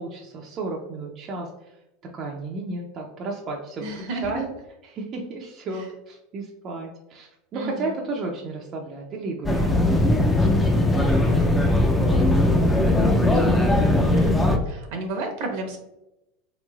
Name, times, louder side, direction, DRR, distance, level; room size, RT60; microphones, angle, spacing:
voice 1, 0.0-1.5 2.1-4.5 4.9-13.3, right 3 dB, 35° right, 0 dB, 0.5 m, -34 dB
voice 2, 3.8-4.4 5.7-5.9 7.5-8.0 14.1-15.8, right 2 dB, 65° right, 3 dB, 0.9 m, -32 dB
sound 1, 9.4-14.6, left 1 dB, 10° left, 0.5 m, -19 dB
3.5 x 3.0 x 2.3 m, 0.90 s
supercardioid pair, 120°, 0 cm